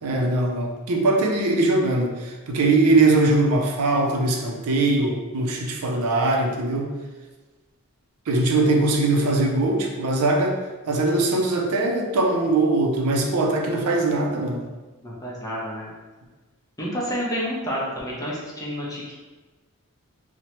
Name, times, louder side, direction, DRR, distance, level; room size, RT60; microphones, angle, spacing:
voice 1, 0.0-6.9 8.3-10.6 10.9-14.6, right 2 dB, 85° right, 2 dB, 0.4 m, -21 dB
voice 2, 15.0-15.9 16.8-19.1, equal, 15° left, -5 dB, 0.5 m, -29 dB
2.9 x 2.1 x 2.9 m, 1.2 s
head